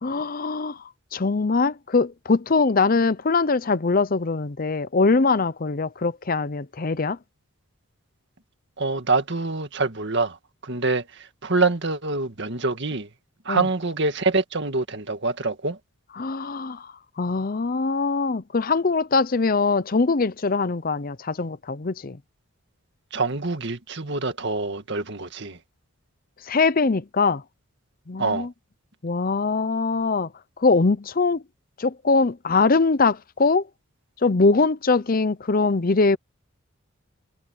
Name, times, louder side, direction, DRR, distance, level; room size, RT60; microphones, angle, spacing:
voice 1, 0.0-7.2 13.5-13.6 16.2-22.2 26.4-27.4 28.1-28.5 29.0-30.3 30.6-31.4 31.8-33.7 34.2-36.2, left 4 dB, 40° left, 0.6 m, -22 dB
voice 2, 8.8-13.1 13.4-15.8 23.1-25.6 28.2-28.5, right 3 dB, 55° right, 2.0 m, -25 dB
head